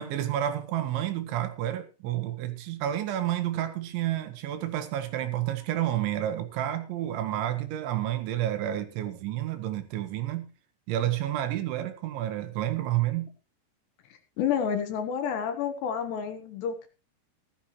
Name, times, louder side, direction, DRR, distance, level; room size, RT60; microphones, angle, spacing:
voice 1, 0.0-10.5 10.9-13.3, right 12 dB, 75° right, 3.4 m, -30 dB
voice 2, 14.4-16.9, left 7 dB, 70° left, 3.1 m, -29 dB
14.5 x 13.5 x 3.0 m
omnidirectional pair, 5.7 m